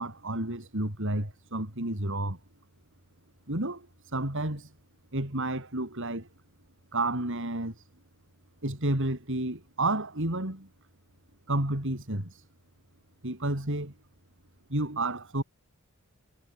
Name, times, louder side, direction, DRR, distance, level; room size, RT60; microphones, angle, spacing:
voice 1, 0.0-2.4 3.5-3.9 4.1-4.7 5.1-6.3 6.9-7.7 8.6-10.7 11.5-12.4 13.2-13.9 14.7-15.4, right 2 dB, 60° right, 4.8 m, -30 dB
head